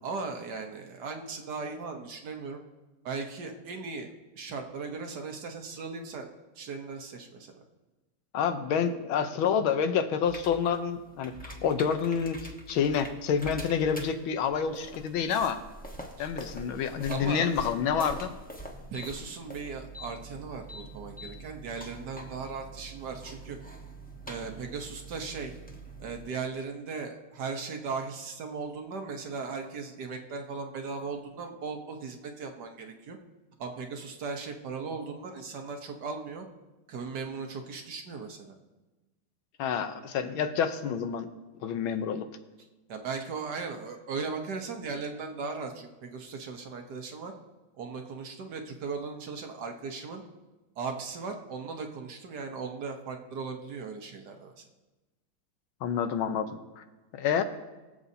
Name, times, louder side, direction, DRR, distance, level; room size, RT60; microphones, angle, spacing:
voice 1, 0.0-2.6 3.0-6.3 6.6-7.6 16.2-16.3 17.1-17.5 18.9-23.6 24.3-25.5 26.0-33.2 33.6-36.5 36.9-38.5 42.9-47.3 47.8-50.2 50.8-54.6, right 4 dB, 60° right, 4 dB, 1.5 m, -37 dB
voice 2, 8.3-15.6 16.2-18.4 39.6-41.3 41.6-42.3 55.8-56.8 57.1-57.4, left 7 dB, 85° left, 9 dB, 1.6 m, -28 dB
sound 1, 10.3-26.3, right 1 dB, 5° left, 0.8 m, -44 dB
22.5 x 7.7 x 2.8 m, 1.1 s
omnidirectional pair, 2.2 m